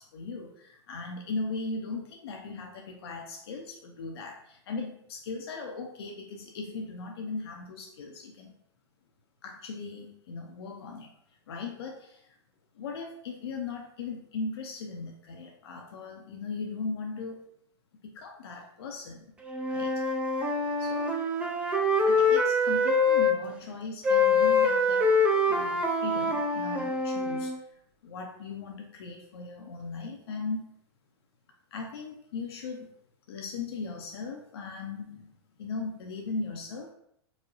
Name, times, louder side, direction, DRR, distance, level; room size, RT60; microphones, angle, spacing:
voice 1, 0.0-8.5 9.4-11.1 11.5-12.2 12.8-17.4 18.0-19.2 19.6-19.9 20.8-21.1 22.1-25.1 25.5-27.5 28.0-30.6 31.7-32.9 33.3-35.3 35.6-36.9, left 4 dB, 60° left, 1 dB, 0.5 m, -38 dB
Wind instrument woodwind instrument, 19.4-23.4 24.0-27.6, left 2 dB, 10° right, 0.4 m, -25 dB
4.7 x 2.1 x 2.6 m, 0.71 s
figure-of-eight pair, 110°, 15 cm